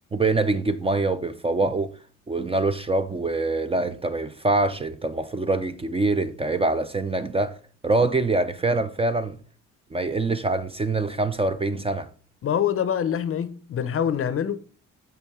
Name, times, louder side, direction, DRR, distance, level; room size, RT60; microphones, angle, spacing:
voice 1, 0.1-2.0 2.3-7.6 7.8-9.4 9.9-12.1, right 3 dB, 20° right, 0.4 m, -24 dB
voice 2, 12.4-14.6, left 9 dB, 45° left, 0.6 m, -25 dB
6.0 x 5.5 x 3.5 m
cardioid pair, 90°, 30 cm